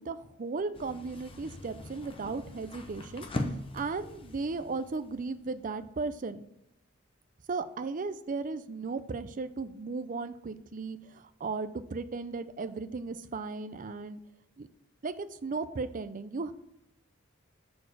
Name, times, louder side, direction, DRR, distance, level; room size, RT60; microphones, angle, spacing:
voice 1, 0.0-3.3 3.7-6.5 7.5-14.2 14.6-14.7 15.0-16.5, right 4 dB, 40° right, 12 dB, 0.5 m, -36 dB
sound 1, 0.7-5.8, left 1 dB, 25° left, 0.7 m, -41 dB
6.8 x 4.2 x 6.6 m, 0.80 s
head